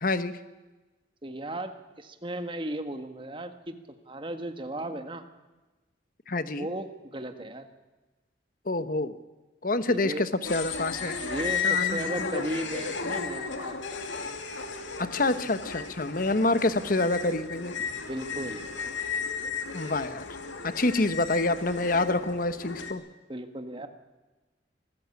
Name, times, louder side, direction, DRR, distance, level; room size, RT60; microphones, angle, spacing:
voice 1, 0.0-0.4 6.3-6.7 8.7-9.2 9.6-11.2 11.6-12.3 15.0-17.7 19.7-20.2 20.6-23.0, left 2 dB, 45° left, 12 dB, 1.1 m, -27 dB
voice 2, 1.2-5.2 6.6-7.7 9.9-10.3 11.2-13.8 18.1-18.7 23.3-23.9, right 1 dB, 25° right, 8 dB, 1.6 m, -36 dB
sound 1, 10.4-22.9, left 5 dB, 85° left, 2.4 m, -34 dB
24.0 x 14.5 x 8.4 m, 1.2 s
head